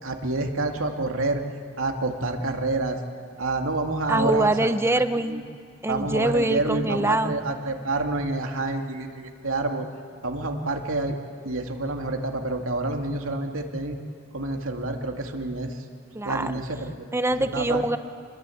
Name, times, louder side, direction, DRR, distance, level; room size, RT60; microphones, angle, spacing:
voice 1, 0.0-1.4 1.8-3.0 3.4-4.7 5.3-5.4 5.9-9.9 10.2-11.2 11.4-14.0 14.3-15.8 16.2-17.1 17.5-17.8, right 2 dB, 90° right, 3 dB, 2.3 m, -28 dB
voice 2, 4.1-5.4 5.8-7.4 16.1-16.5 17.1-18.0, right 1 dB, 10° right, 10 dB, 0.9 m, -24 dB
28.0 x 22.0 x 8.5 m, 2.1 s
head